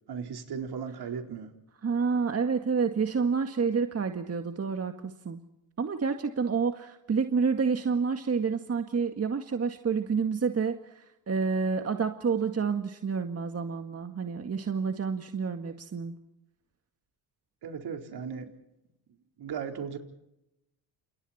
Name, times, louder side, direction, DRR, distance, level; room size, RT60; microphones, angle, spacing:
voice 1, 0.1-1.5 17.6-18.5 19.4-20.0, right 6 dB, 60° right, 4 dB, 4.3 m, -36 dB
voice 2, 1.8-5.4 5.8-10.8 11.3-16.1, right 5 dB, 35° right, 6 dB, 1.9 m, -29 dB
29.0 x 28.5 x 4.4 m, 0.86 s
supercardioid pair, 80°, 43 cm